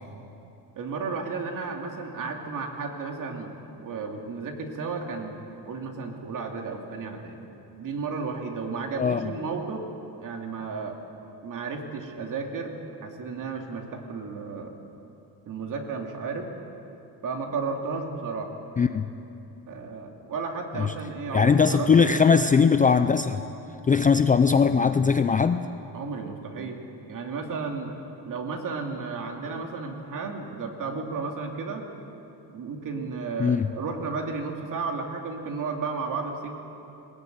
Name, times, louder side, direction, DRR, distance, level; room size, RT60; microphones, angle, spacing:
voice 1, 0.8-3.6 3.8-7.4 7.8-9.9 10.2-11.0 11.4-14.7 15.5-16.5 17.2-18.5 19.7-22.4 25.9-26.8 27.1-27.9 28.2-31.9 32.5-36.5, right 4 dB, 50° right, 2 dB, 2.7 m, -33 dB
voice 2, 9.0-9.3 18.8-19.1 20.8-20.9 21.3-23.4 23.9-25.7 33.4-33.7, left 5 dB, 20° left, 9 dB, 0.4 m, -20 dB
20.0 x 19.0 x 9.4 m, 2.9 s
cardioid pair, 155°, 42 cm